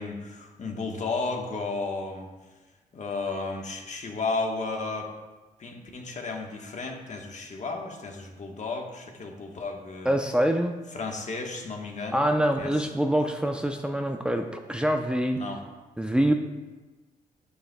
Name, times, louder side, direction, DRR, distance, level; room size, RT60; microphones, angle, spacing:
voice 1, 0.0-2.3 2.9-5.1 5.6-10.2 10.9-12.3 12.6-12.7 15.4-15.6, left 3 dB, 50° left, 1 dB, 1.3 m, -33 dB
voice 2, 10.0-10.7 12.1-15.4 16.0-16.3, right 1 dB, 5° right, 4 dB, 0.6 m, -25 dB
8.5 x 7.8 x 2.3 m, 1.2 s
supercardioid pair, 60°, 15 cm